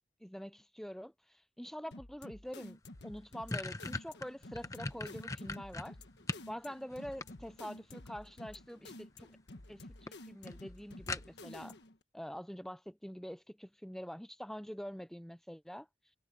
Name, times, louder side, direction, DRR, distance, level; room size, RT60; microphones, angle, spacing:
voice 1, 0.2-6.0 6.5-9.3 9.7-11.7 12.1-15.9, equal, ahead, 0.5 m, -45 dB
sound 1, 1.9-12.0, left 2 dB, 80° left, 1.5 m, -51 dB
sound 2, 2.6-2.7 3.0-6.5 6.9-7.8 8.9-9.3 9.6-9.7 10.1-10.2 10.5-10.6 11.1-11.6, left 2 dB, 20° left, 0.9 m, -40 dB
head